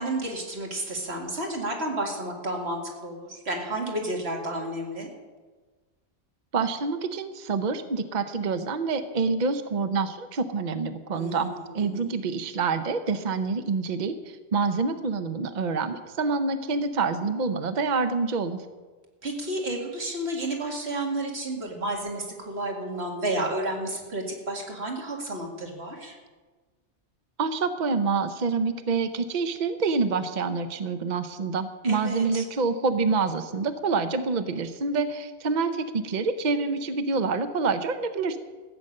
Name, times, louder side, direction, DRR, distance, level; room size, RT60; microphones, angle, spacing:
voice 1, 0.0-5.1 11.1-12.2 19.2-26.2 31.8-32.4, right 1 dB, 70° right, 1 dB, 2.4 m, -31 dB
voice 2, 6.5-18.6 27.4-38.4, right 4 dB, 45° right, 10 dB, 0.8 m, -27 dB
15.0 x 8.6 x 6.6 m, 1.4 s
omnidirectional pair, 1.1 m